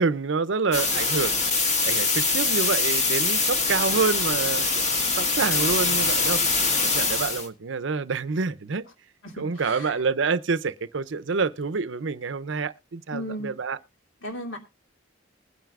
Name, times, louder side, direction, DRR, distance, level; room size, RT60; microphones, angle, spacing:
voice 1, 0.0-1.4 1.8-4.9 5.2-6.4 6.8-8.8 9.4-13.8, right 4 dB, 75° right, 0.6 m, -27 dB
sound 1, 0.7-7.5, left 3 dB, 35° left, 1.5 m, -23 dB
voice 2, 9.2-10.0 13.1-13.5 14.2-14.6, equal, 80° left, 2.5 m, -35 dB
20.5 x 9.2 x 2.4 m
head